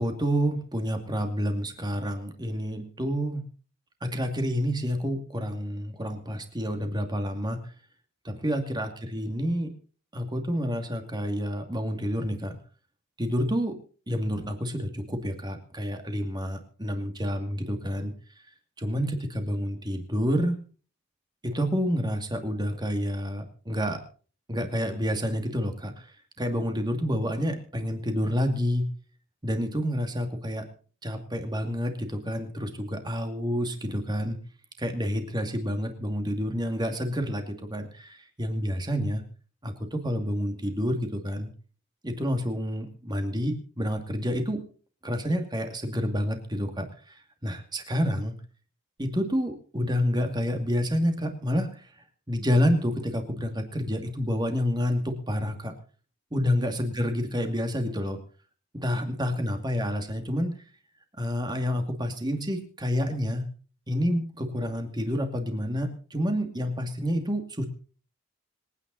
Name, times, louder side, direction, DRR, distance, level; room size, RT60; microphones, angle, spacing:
voice 1, 0.0-3.4 4.0-7.6 8.2-9.7 10.1-12.6 13.2-13.8 14.1-18.1 18.8-20.6 21.4-24.0 24.5-26.1 26.4-28.8 29.4-30.7 31.0-34.4 34.8-39.2 39.6-41.5 42.0-44.6 45.0-47.1 47.4-48.3 49.0-51.9 52.3-55.7 56.3-58.2 58.7-60.5 61.2-63.5 63.9-67.6, equal, 20° right, 6 dB, 2.4 m, -29 dB
26.0 x 9.6 x 4.1 m, 0.40 s
head